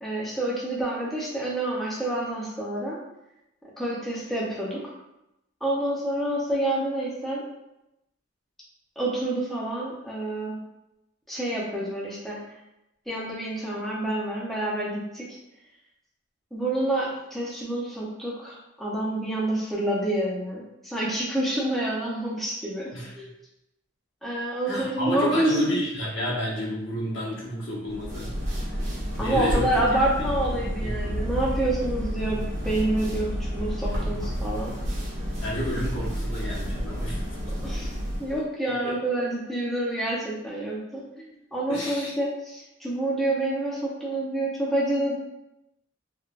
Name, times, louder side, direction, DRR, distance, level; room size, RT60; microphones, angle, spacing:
voice 1, 0.0-3.0 3.8-4.8 5.6-7.4 9.0-10.6 11.3-12.4 13.1-15.2 16.5-23.3 24.2-25.8 29.2-34.7 37.6-37.9 38.2-45.1, right 1 dB, ahead, -6 dB, 0.5 m, -28 dB
voice 2, 24.7-28.8 29.2-30.0 30.5-31.4 35.4-37.2 38.8-38.9 41.7-42.1, equal, 75° left, -5 dB, 0.8 m, -31 dB
sound 1, 27.9-38.4, equal, 85° right, 1.0 m, -30 dB
3.2 x 2.2 x 2.3 m, 0.88 s
head